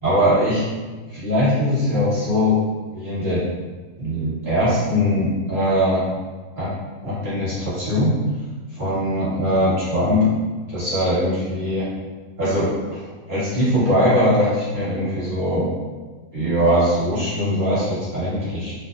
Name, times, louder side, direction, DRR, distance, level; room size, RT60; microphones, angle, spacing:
voice 1, 0.0-0.6 1.1-2.6 2.9-3.4 4.0-6.1 6.5-6.7 7.0-8.2 8.7-10.2 10.7-11.9 12.4-15.7 16.3-18.7, equal, 35° right, -11 dB, 1.2 m, -21 dB
2.7 x 2.1 x 2.4 m, 1.4 s
omnidirectional pair, 1.6 m